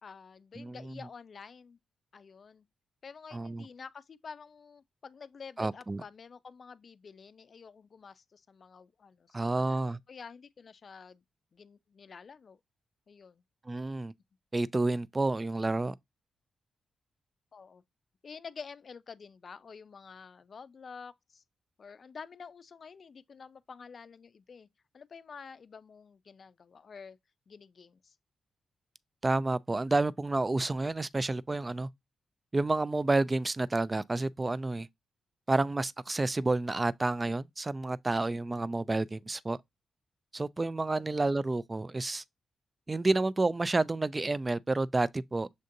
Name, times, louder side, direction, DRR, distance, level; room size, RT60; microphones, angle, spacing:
voice 1, 0.0-1.8 2.1-2.6 3.0-11.2 11.5-12.6 13.1-13.4 17.5-17.8 18.2-21.4 21.8-24.7 24.9-27.2 27.5-28.2 40.9-41.2, left 5 dB, 60° left, 0.4 m, -49 dB
voice 2, 3.3-3.6 5.6-6.0 9.3-10.0 13.7-14.1 14.5-15.9 29.2-31.9 32.5-34.9 35.5-39.6 40.3-42.2 42.9-45.6, right 2 dB, 30° right, 0.3 m, -30 dB
6.4 x 2.5 x 2.6 m
supercardioid pair, 45°, 0 cm